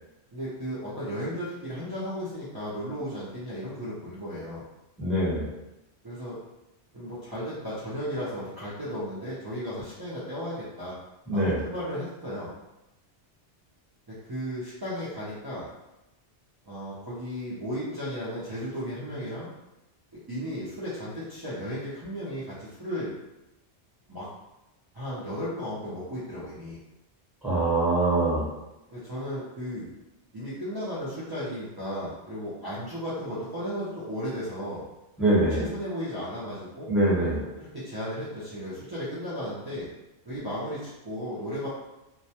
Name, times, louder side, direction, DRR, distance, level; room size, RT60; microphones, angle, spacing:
voice 1, 0.3-4.6 6.0-6.4 6.9-10.9 11.3-12.5 14.2-15.7 16.7-19.5 20.3-23.1 24.1-24.3 24.9-26.8 28.9-29.9 30.3-34.8 35.6-36.9 37.6-39.9 40.3-41.7, equal, 35° right, -11 dB, 0.3 m, -35 dB
voice 2, 5.0-5.5 11.3-11.6 27.4-28.4 35.2-35.7 36.9-37.4, right 2 dB, ahead, -9 dB, 0.8 m, -23 dB
2.2 x 2.1 x 2.7 m, 0.98 s
omnidirectional pair, 1.2 m